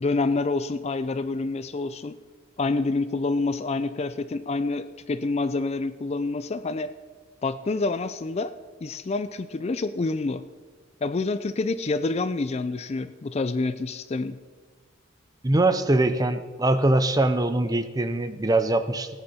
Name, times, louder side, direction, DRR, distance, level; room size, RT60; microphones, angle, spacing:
voice 1, 0.0-2.2 2.6-6.9 7.4-8.5 8.8-10.4 11.0-14.4, left 3 dB, 30° left, 13 dB, 0.4 m, -27 dB
voice 2, 15.4-19.1, right 2 dB, 20° right, 10 dB, 0.6 m, -22 dB
17.0 x 9.6 x 4.2 m, 1.4 s
head